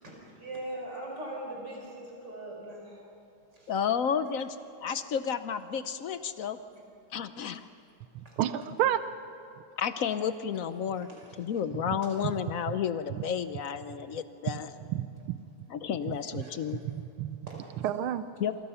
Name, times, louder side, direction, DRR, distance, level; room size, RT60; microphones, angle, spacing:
voice 1, 0.0-3.0 3.5-3.7 7.4-7.5 8.2-8.3 11.0-11.3 16.1-16.6 17.5-17.9, right 1 dB, 55° right, -1 dB, 5.7 m, -41 dB
voice 2, 3.7-6.6 7.1-7.7 9.8-11.1 11.4-14.7 15.7-16.8 18.4-18.5, left 7 dB, 65° left, 11 dB, 0.8 m, -31 dB
voice 3, 8.4-9.0 14.9-15.4 16.8-17.4 17.8-18.2, right 11 dB, 85° right, 12 dB, 1.6 m, -29 dB
28.0 x 24.0 x 5.7 m, 2.6 s
omnidirectional pair, 2.2 m